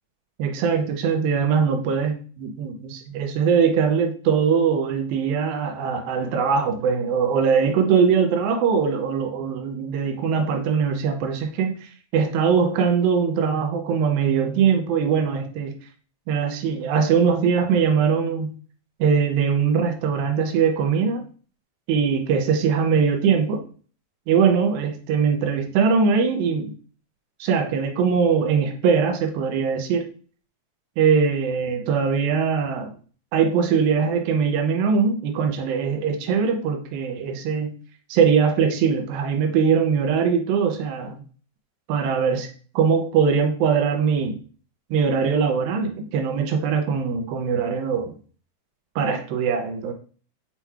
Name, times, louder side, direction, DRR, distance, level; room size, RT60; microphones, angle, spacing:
voice 1, 0.4-15.7 16.3-18.5 19.0-21.2 21.9-23.6 24.3-26.7 27.4-30.1 31.0-32.9 33.3-37.7 38.1-41.2 41.9-42.5 42.8-44.4 44.9-48.1 49.0-49.9, right 6 dB, 90° right, 4 dB, 2.5 m, -21 dB
7.1 x 2.8 x 2.3 m, 0.40 s
omnidirectional pair, 4.1 m